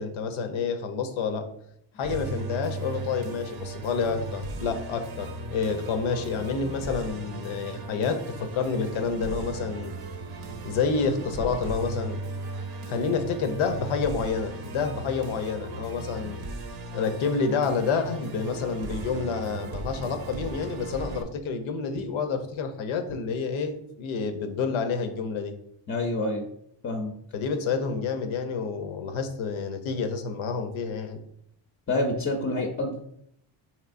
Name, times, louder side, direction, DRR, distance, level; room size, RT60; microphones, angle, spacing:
voice 1, 0.0-1.5 1.9-9.9 10.6-12.2 12.9-16.4 16.9-25.5 27.3-31.2, left 5 dB, 80° left, 7 dB, 0.7 m, -29 dB
Musical instrument, 2.0-21.2, right 2 dB, 55° right, 0.6 m, -37 dB
voice 2, 25.9-26.5 26.8-27.1 31.9-33.0, left 2 dB, 25° left, 1 dB, 0.5 m, -27 dB
4.3 x 3.0 x 2.5 m, 0.72 s
cardioid pair, 85°, 47 cm